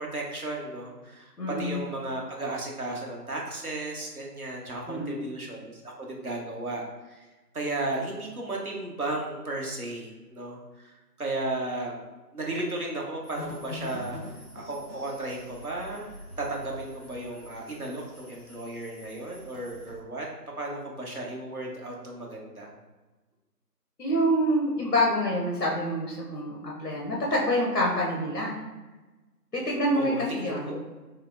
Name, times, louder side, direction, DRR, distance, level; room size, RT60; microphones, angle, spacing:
voice 1, 0.0-7.2 7.5-10.9 11.2-12.0 12.3-14.2 14.5-16.1 16.4-20.3 20.6-22.7 29.9-30.8, right 2 dB, 60° right, -2 dB, 0.8 m, -34 dB
voice 2, 1.4-1.8 4.9-5.2 24.0-28.6 29.5-30.7, equal, 65° left, -2 dB, 0.8 m, -26 dB
sound 1, 13.2-20.0, left 2 dB, ahead, 0.8 m, -44 dB
3.2 x 2.9 x 2.5 m, 1.2 s
figure-of-eight pair, 175°, 49 cm